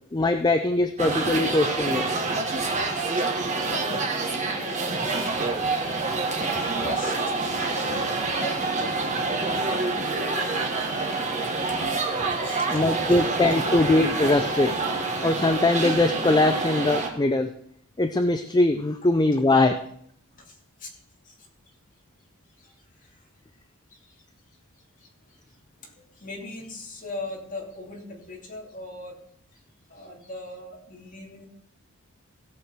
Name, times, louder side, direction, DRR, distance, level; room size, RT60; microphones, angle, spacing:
voice 1, 0.1-2.1 12.7-14.8 15.2-17.5 18.0-19.7, left 2 dB, 20° left, 7 dB, 0.5 m, -21 dB
sound 1, 1.0-17.1, right 3 dB, 35° right, 1.5 m, -27 dB
voice 2, 3.7-6.1 6.5-8.0 8.3-9.0 9.2-11.0 12.4-13.3 20.3-20.9 21.2-21.3 22.6-22.7 23.1-23.2 24.0-24.1 25.0-25.4 25.8-29.2 29.9-31.5, left 2 dB, 35° left, -1 dB, 2.6 m, -40 dB
16.5 x 6.6 x 4.5 m, 0.67 s
head